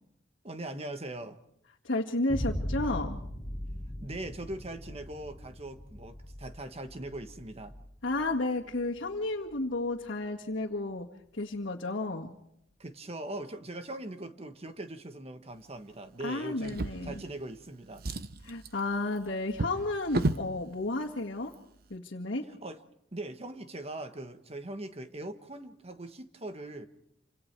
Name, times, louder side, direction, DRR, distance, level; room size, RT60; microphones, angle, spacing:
voice 1, 0.4-1.4 4.0-7.7 12.8-18.0 22.6-22.8 23.1-26.9, right 1 dB, 35° right, 8 dB, 1.4 m, -41 dB
voice 2, 1.8-3.2 8.0-11.1 11.3-12.3 16.2-17.2 18.4-21.5 21.9-22.4, left 2 dB, 75° left, -4 dB, 2.0 m, -32 dB
Boom, 2.3-10.1, equal, 30° left, 2.8 m, -40 dB
Drawer open or close, 16.6-17.6 17.9-20.5 21.4-21.6 21.9-22.0, right 2 dB, 55° right, 0.9 m, -34 dB
28.0 x 26.5 x 4.7 m, 0.77 s
head